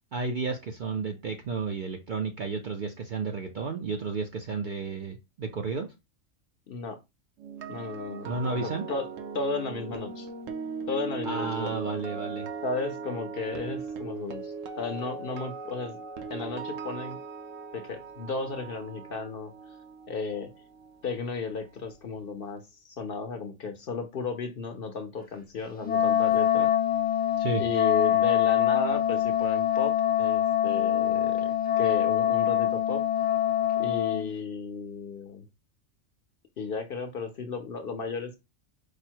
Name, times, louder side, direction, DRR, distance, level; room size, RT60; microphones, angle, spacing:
voice 1, 0.1-5.9 8.2-8.8 11.2-12.5 27.4-27.6, right 4 dB, 60° right, 0.5 m, -32 dB
voice 2, 6.7-7.0 7.7-9.1 9.3-10.3 10.9-11.7 12.6-16.0 16.3-17.2 17.7-19.5 20.1-20.5 21.0-26.7 27.6-33.1 33.8-35.5 36.6-38.4, left 4 dB, 55° left, 0.7 m, -34 dB
sound 1, 7.4-21.5 21.7-22.0, right 5 dB, 80° right, 1.0 m, -39 dB
Wind instrument woodwind instrument, 25.8-34.3, left 10 dB, 15° left, 0.4 m, -24 dB
4.9 x 2.0 x 4.4 m
omnidirectional pair, 1.3 m